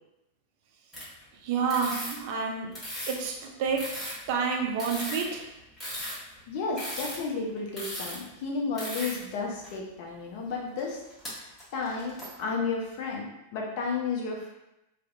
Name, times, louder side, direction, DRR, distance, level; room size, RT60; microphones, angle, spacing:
sound 1, 0.9-1.2 1.6-3.3 3.7-8.2 8.7-9.2 9.6-9.7 10.7-11.3 11.6-12.4, equal, 15° left, 1.0 m, -37 dB
voice 1, 1.4-2.8 3.1-4.0 4.3-5.5, right 5 dB, 50° right, 2 dB, 0.4 m, -29 dB
voice 2, 6.5-11.0 11.3-14.5, left 4 dB, 50° left, -1 dB, 0.6 m, -33 dB
2.5 x 2.0 x 2.5 m, 0.91 s
figure-of-eight pair, 90°, 0 cm